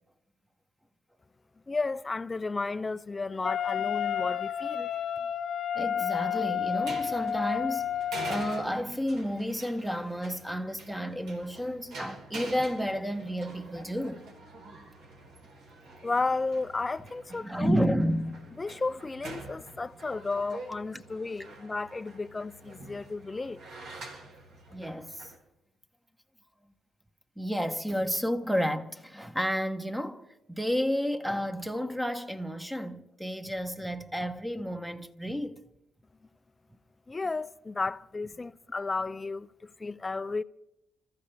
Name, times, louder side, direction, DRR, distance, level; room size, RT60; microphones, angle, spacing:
voice 1, 1.7-5.0 16.0-17.9 18.6-23.6 37.1-40.4, left 3 dB, 25° left, 0.5 m, -33 dB
Wind instrument woodwind instrument, 3.4-8.7, left 9 dB, 65° left, 1.1 m, -31 dB
voice 2, 5.7-7.9 8.3-14.3 17.3-18.4 20.9-21.0 24.7-25.3 27.4-35.6, equal, 5° right, 1.1 m, -31 dB
sound 1, 6.6-25.4, right 2 dB, 75° right, 3.7 m, -46 dB
29.5 x 14.0 x 3.4 m
cardioid pair, 90°, 0 cm